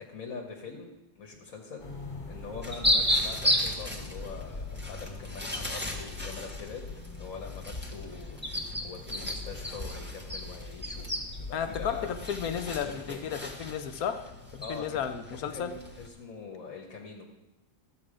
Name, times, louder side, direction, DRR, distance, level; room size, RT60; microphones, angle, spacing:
voice 1, 0.1-1.9 2.3-12.1 12.8-13.3 14.6-17.2, left 5 dB, 65° left, 1 dB, 1.6 m, -43 dB
sound 1, 1.8-12.9, left 3 dB, 40° left, 2.2 m, -42 dB
sound 2, 2.6-16.1, left 1 dB, 10° right, 1.2 m, -34 dB
voice 2, 11.5-15.7, left 8 dB, 90° left, 8 dB, 1.2 m, -33 dB
13.0 x 7.9 x 4.9 m, 1.0 s
omnidirectional pair, 1.5 m